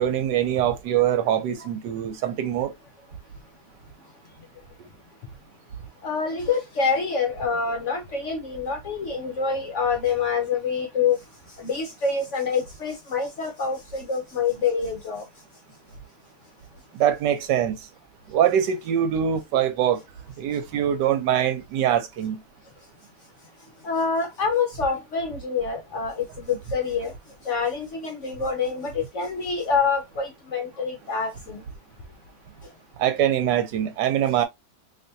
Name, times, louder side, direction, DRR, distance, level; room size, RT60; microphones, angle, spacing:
voice 1, 0.0-2.7 16.9-17.8 18.3-20.0 20.4-22.4 33.0-34.4, right 10 dB, 80° right, 1.3 m, -23 dB
voice 2, 6.0-11.2 11.6-15.2 23.8-27.1 27.4-31.6, left 5 dB, 60° left, 0.8 m, -26 dB
3.3 x 3.0 x 2.7 m
omnidirectional pair, 1.9 m